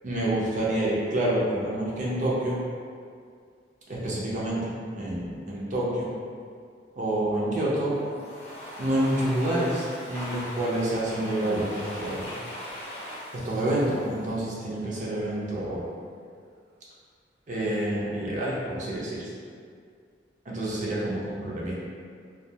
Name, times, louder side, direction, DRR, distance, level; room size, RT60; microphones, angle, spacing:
voice 1, 0.0-2.6 3.9-6.1 6.9-7.9 8.8-12.3 13.3-15.8 17.5-19.3 20.5-21.7, right 1 dB, 45° right, -6 dB, 0.6 m, -28 dB
Domestic sounds home sounds, 7.9-14.8, left 1 dB, 40° left, 0.7 m, -40 dB
2.3 x 2.3 x 2.7 m, 2.2 s
head